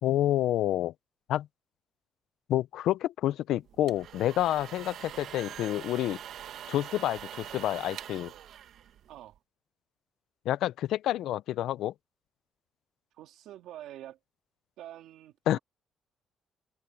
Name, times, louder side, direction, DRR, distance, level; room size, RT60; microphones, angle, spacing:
voice 1, 0.0-0.9 1.3-1.5 2.5-6.2 6.7-8.3 10.5-11.9 15.5-15.6, left 13 dB, 85° left, 0.5 m, -28 dB
sound 1, 3.7-9.4, right 10 dB, 75° right, 1.3 m, -44 dB
voice 2, 9.1-9.4 13.1-14.2 14.8-15.6, right 12 dB, 90° right, 2.8 m, -47 dB
open air
cardioid pair, 90°, 0 cm